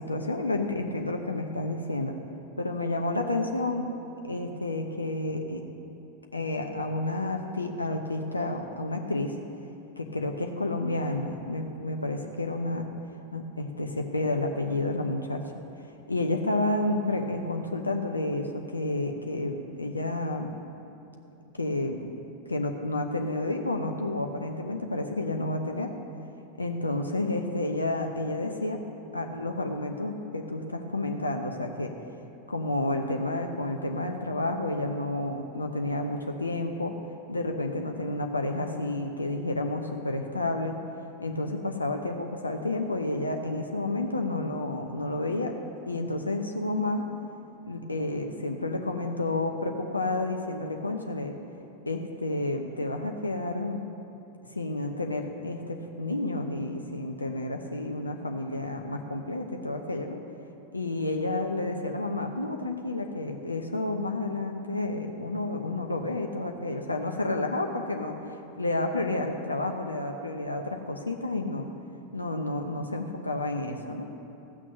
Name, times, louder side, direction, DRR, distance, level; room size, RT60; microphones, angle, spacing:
voice 1, 0.0-2.2 2.6-3.9 4.2-5.6 6.3-9.3 10.0-12.9 13.3-15.4 16.1-20.5 21.6-22.1 22.5-25.9 26.6-28.8 29.1-31.9 32.5-36.9 37.3-40.7 41.2-45.5 45.9-47.0 47.7-51.3 51.9-53.8 54.6-60.2 60.7-68.2 68.6-71.7 72.1-74.1, left 2 dB, 80° left, 3 dB, 0.8 m, -30 dB
15.5 x 6.1 x 6.8 m, 3.0 s
figure-of-eight pair, 90°, 0 cm